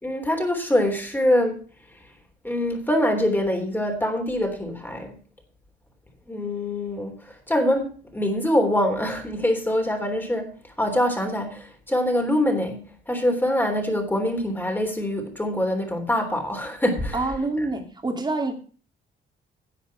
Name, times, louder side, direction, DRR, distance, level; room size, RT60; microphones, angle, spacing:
voice 1, 0.0-1.6 2.4-5.2 6.3-17.2, left 1 dB, 10° left, 3 dB, 3.4 m, -24 dB
voice 2, 17.1-18.5, right 2 dB, 20° right, 3 dB, 2.7 m, -26 dB
11.0 x 7.3 x 5.7 m, 0.40 s
cardioid pair, 90°, 20 cm